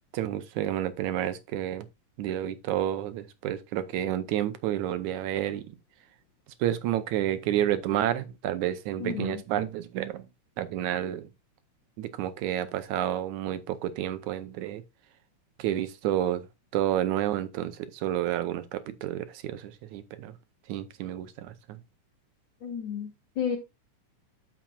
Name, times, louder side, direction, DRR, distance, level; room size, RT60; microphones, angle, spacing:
voice 1, 0.1-1.9 2.2-5.8 6.6-10.3 10.6-11.3 12.0-14.8 15.6-16.5 16.7-20.4 20.7-21.8, right 12 dB, 75° right, 2.0 m, -30 dB
voice 2, 9.0-9.4 22.6-23.1 23.4-23.6, left 7 dB, 70° left, 1.1 m, -31 dB
13.5 x 5.8 x 2.4 m
omnidirectional pair, 3.7 m